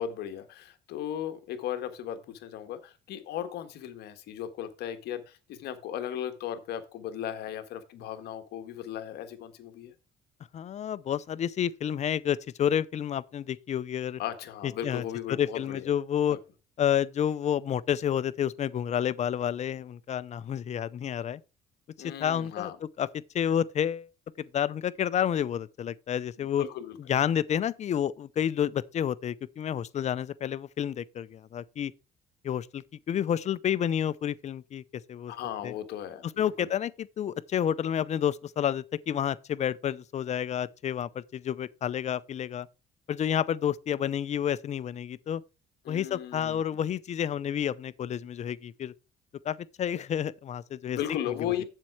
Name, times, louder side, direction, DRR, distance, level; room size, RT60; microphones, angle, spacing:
voice 1, 0.0-9.9 14.2-15.9 16.3-16.4 22.0-22.8 26.6-27.0 35.3-36.7 45.8-46.6 50.9-51.6, left 10 dB, 75° left, 1.5 m, -36 dB
voice 2, 10.5-14.2 14.6-16.4 16.8-21.4 22.0-23.1 23.3-24.1 24.4-26.7 27.0-31.9 32.4-34.8 35.1-35.3 35.6-35.7 36.4-42.7 43.1-45.4 45.9-48.9 49.4-51.0 51.4-51.5, left 9 dB, 45° left, 0.6 m, -30 dB
7.5 x 7.5 x 4.7 m
cardioid pair, 110°, 17 cm